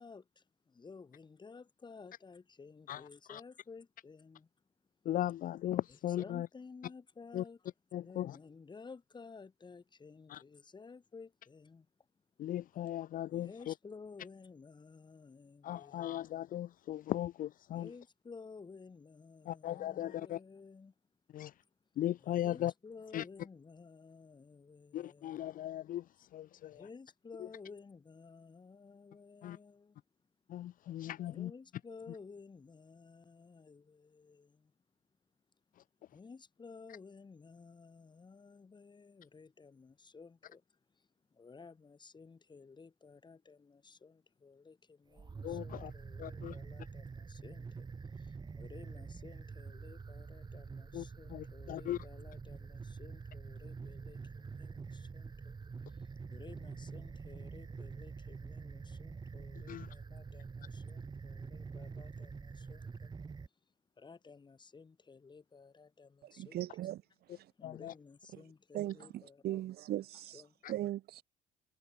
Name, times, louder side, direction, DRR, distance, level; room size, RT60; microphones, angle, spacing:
voice 1, 0.0-4.5 5.9-12.1 12.7-13.0 13.3-16.3 17.7-20.9 22.2-25.4 26.7-30.0 31.2-34.7 36.1-63.1 64.0-66.9 67.6-69.6 70.3-70.6, left 4 dB, 25° left, 8.0 m, -54 dB
voice 2, 5.1-6.5 7.3-7.4 7.9-8.3 10.3-10.4 12.4-13.7 15.6-17.9 19.5-20.4 21.3-21.5 22.0-22.7 23.1-23.2 24.9-26.0 26.3-26.8 29.4-29.6 30.5-31.5 45.4-45.9 46.2-46.5 50.9-51.0 51.3-52.0 59.7-59.9 67.6-67.9 70.6-70.7, left 12 dB, 55° left, 0.6 m, -37 dB
sound 1, 45.1-63.5, right 5 dB, 25° right, 1.5 m, -46 dB
voice 3, 66.2-67.0 67.3-67.5 68.7-70.4 70.7-71.2, right 14 dB, 70° right, 2.2 m, -39 dB
cardioid pair, 110°, 17 cm